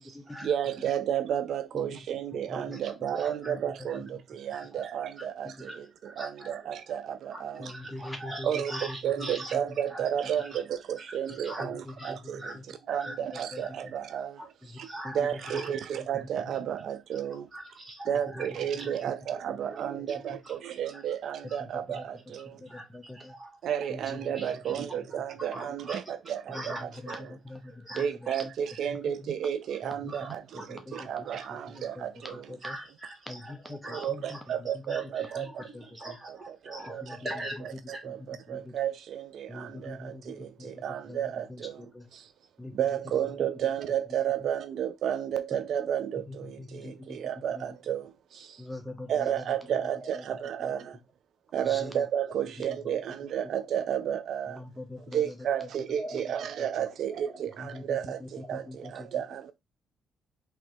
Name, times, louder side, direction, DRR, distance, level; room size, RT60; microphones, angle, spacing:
voice 1, 0.4-7.7 8.4-12.5 12.9-14.9 15.1-17.5 18.1-22.6 23.6-27.3 27.9-32.6 33.9-35.6 36.0-37.2 37.9-42.3 42.7-48.6 49.1-51.0 51.5-54.6 55.1-59.5, right 9 dB, 70° right, 0.3 m, -32 dB
voice 2, 2.7-3.5 3.9-4.0 4.5-4.8 5.2-5.3 5.6-6.5 7.3-9.5 9.9-10.0 10.3-10.5 11.1-11.6 12.0-12.1 12.4-12.6 12.9-13.2 13.6-13.7 14.0-14.1 14.4-14.5 14.8-15.7 17.5-18.5 18.8-19.0 19.3-19.4 19.7-20.5 20.9-21.0 21.5-21.6 22.7-23.6 24.3-24.7 25.1-26.0 26.5-26.8 27.1-27.2 27.5-28.4 29.4-29.5 30.1-31.5 32.2-34.4 34.7-37.6 37.9-38.0 49.7-49.9 55.0-55.1 56.0-56.2 58.4-58.7, right 1 dB, 25° right, 2.0 m, -43 dB
voice 3, 7.6-8.5 9.2-9.3 11.6-11.7 12.1-12.2 13.5-13.6 22.5-23.3 26.5-26.6 27.0-27.1 27.5-27.6 28.0-28.1 30.0-30.1 30.7-30.8 32.0-32.1 32.5-32.7 33.3-33.4 33.7-33.8 34.1-34.2 35.4-35.5 37.0-37.2 38.5-38.7 39.5-40.3 40.6-40.7 41.1-41.2 41.5-41.6 41.9-42.0 42.6-42.7 46.6-47.2 47.6-47.7 48.6-49.3 51.7-51.9 54.6-55.2 57.7-57.8 58.7-59.1, left 2 dB, 10° left, 0.7 m, -41 dB
3.6 x 3.0 x 4.4 m
cardioid pair, 90°, 0 cm